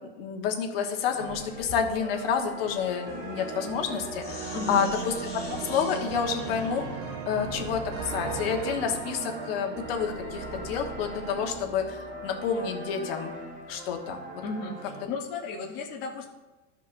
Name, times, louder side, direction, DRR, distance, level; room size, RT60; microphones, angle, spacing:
voice 1, 0.1-5.1 5.6-6.8 7.3-13.3 13.7-14.2, left 7 dB, 50° left, 3 dB, 1.3 m, -29 dB
Sink (filling or washing), 1.1-9.2, left 2 dB, 5° left, 2.6 m, -46 dB
sound 1, 1.2-15.0, equal, 20° right, 1.1 m, -42 dB
sound 2, 3.1-13.1, right 6 dB, 50° right, 1.2 m, -38 dB
voice 2, 4.5-4.9 14.4-16.3, left 3 dB, 25° left, -2 dB, 0.8 m, -34 dB
14.0 x 5.2 x 2.6 m, 1.1 s
supercardioid pair, 170°, 37 cm